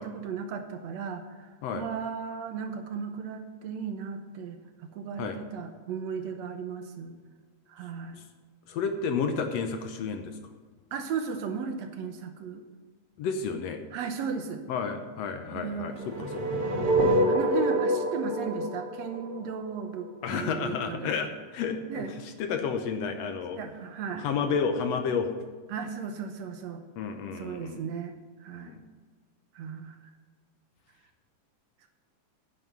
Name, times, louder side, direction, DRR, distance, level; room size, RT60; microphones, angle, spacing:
voice 1, 0.0-1.5 1.7-4.6 4.9-7.2 7.7-8.2 10.9-12.6 13.9-14.6 15.5-16.3 17.3-21.1 21.9-22.1 23.6-24.3 25.7-26.8 27.4-28.1 28.4-28.7 29.6-30.0, right 6 dB, 70° right, 6 dB, 2.1 m, -35 dB
voice 2, 8.7-10.4 13.2-13.8 14.7-16.7 20.2-23.6 24.2-25.3 27.0-27.8 28.6-28.8, left 5 dB, 70° left, 6 dB, 1.8 m, -31 dB
sound 1, 16.0-20.1, right 1 dB, 40° right, 0.7 m, -26 dB
9.7 x 9.7 x 5.5 m, 1.5 s
omnidirectional pair, 3.3 m